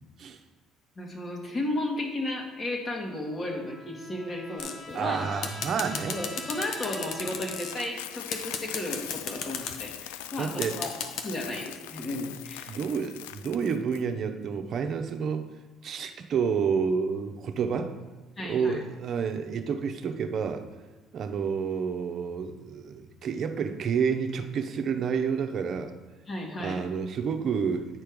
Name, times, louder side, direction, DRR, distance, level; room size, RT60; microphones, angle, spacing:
voice 1, 1.0-5.3 6.1-10.9 11.2-12.8 18.4-18.8 26.3-26.8, left 1 dB, 40° left, 0 dB, 2.0 m, -34 dB
Trumpet, 3.0-8.2, left 2 dB, 20° left, 1.6 m, -45 dB
sound 1, 4.6-4.9 5.4-7.7 8.3-9.8 10.6-11.2, left 6 dB, 65° left, 0.9 m, -34 dB
voice 2, 4.9-6.2 10.4-10.8 12.7-15.5 15.8-17.9 18.4-20.7 21.1-25.9 26.6-27.9, right 6 dB, 55° right, 6 dB, 0.8 m, -29 dB
Coin (dropping), 6.6-14.0, left 13 dB, 85° left, 0.3 m, -42 dB
9.0 x 4.5 x 5.1 m, 1.3 s
hypercardioid pair, 65°, 0 cm